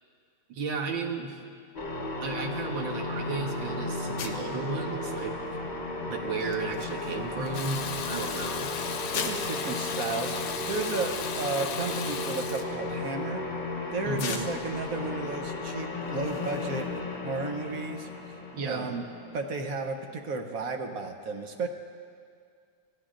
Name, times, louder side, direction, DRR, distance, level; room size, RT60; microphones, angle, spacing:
voice 1, 0.5-1.4 2.2-5.4 6.1-8.7 14.1-14.5 18.5-18.9, right 4 dB, 80° right, 3 dB, 1.9 m, -34 dB
sound 1, 1.7-20.1, left 2 dB, 30° left, 1.0 m, -35 dB
sound 2, 4.2-17.0, left 6 dB, 60° left, 1.2 m, -44 dB
Water tap faucet / Bathtub (filling or washing), 7.5-12.6, left 6 dB, 80° left, 1.7 m, -36 dB
voice 2, 9.1-13.4 13.9-16.8 17.2-18.4 18.6-19.0 19.3-21.7, right 3 dB, 55° right, 4 dB, 1.1 m, -33 dB
24.0 x 15.5 x 2.5 m, 2.2 s
omnidirectional pair, 2.1 m